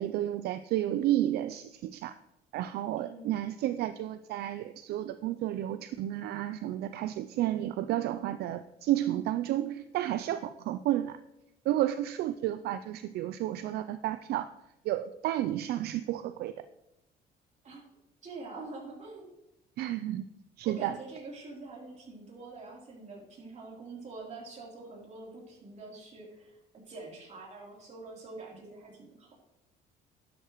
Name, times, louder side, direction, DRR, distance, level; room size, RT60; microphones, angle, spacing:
voice 1, 0.0-2.2 2.5-11.2 11.6-14.5 14.8-16.6 19.8-20.3 20.6-21.0, right 13 dB, 70° right, 11 dB, 0.4 m, -31 dB
voice 2, 3.0-3.3 17.6-17.8 18.2-19.3 20.6-26.5 26.9-29.3, right 3 dB, 40° right, -3 dB, 3.4 m, -45 dB
11.0 x 8.0 x 3.1 m, 0.89 s
cardioid pair, 110°, 17 cm